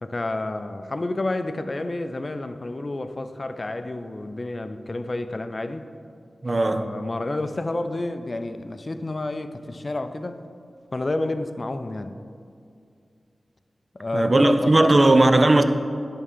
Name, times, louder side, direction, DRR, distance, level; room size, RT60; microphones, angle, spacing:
voice 1, 0.0-5.9 6.5-10.4 10.9-12.2 13.9-15.1, left 2 dB, 45° left, 9 dB, 0.4 m, -30 dB
voice 2, 6.4-6.9 14.1-15.6, right 2 dB, 45° right, 9 dB, 0.5 m, -17 dB
11.0 x 3.6 x 5.4 m, 2.3 s
cardioid pair, 40°, 0 cm